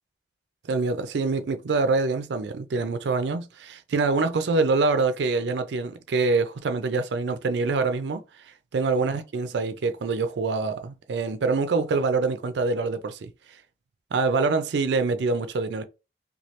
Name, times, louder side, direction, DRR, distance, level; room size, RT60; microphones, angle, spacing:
voice 1, 0.7-8.2 8.7-13.3 14.1-15.8, right 3 dB, 80° right, 0.4 m, -25 dB
3.1 x 2.3 x 2.8 m
head